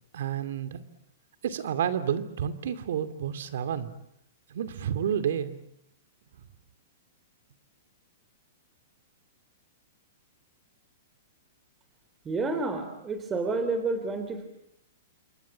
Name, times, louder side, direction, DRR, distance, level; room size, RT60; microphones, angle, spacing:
voice 1, 0.1-0.8 1.4-3.9 4.5-5.6, right 9 dB, 70° right, 12 dB, 2.6 m, -30 dB
voice 2, 12.2-14.5, right 3 dB, 15° right, 7 dB, 3.6 m, -30 dB
28.0 x 23.5 x 8.5 m, 0.77 s
hypercardioid pair, 145°, 0 cm